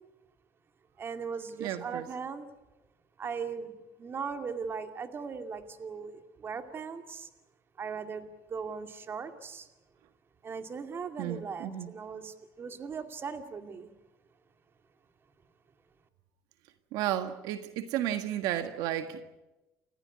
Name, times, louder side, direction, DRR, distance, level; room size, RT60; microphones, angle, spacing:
voice 1, 1.0-2.5 3.2-7.3 7.8-9.7 10.4-13.9, right 5 dB, 35° right, 7 dB, 2.4 m, -39 dB
voice 2, 1.6-2.1 11.2-11.9 16.9-19.2, right 12 dB, 75° right, 9 dB, 1.6 m, -33 dB
30.0 x 14.5 x 9.7 m, 1.0 s
cardioid pair, 110°, 7 cm